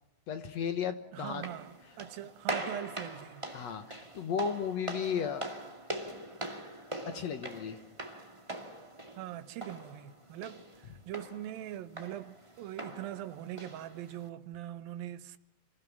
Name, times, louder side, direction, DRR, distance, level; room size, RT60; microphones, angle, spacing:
voice 1, 0.3-1.4 3.5-5.5 7.1-7.8, left 7 dB, 60° left, 2.1 m, -34 dB
voice 2, 1.1-3.4 9.2-15.4, right 12 dB, 90° right, 2.8 m, -42 dB
sound 1, 1.3-14.3, right 1 dB, 10° right, 1.5 m, -43 dB
27.5 x 16.5 x 7.2 m
omnidirectional pair, 4.0 m